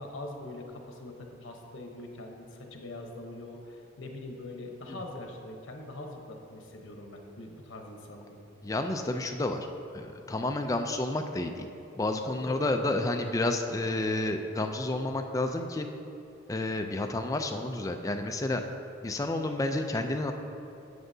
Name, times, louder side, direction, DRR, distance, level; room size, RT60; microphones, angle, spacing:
voice 1, 0.0-8.4 12.2-12.7, left 2 dB, 80° left, 2 dB, 1.0 m, -43 dB
voice 2, 8.6-9.7 9.9-11.7 11.9-15.9 16.5-18.6 19.0-20.3, left 2 dB, 15° left, 5 dB, 0.4 m, -30 dB
9.4 x 7.8 x 2.7 m, 2.9 s
head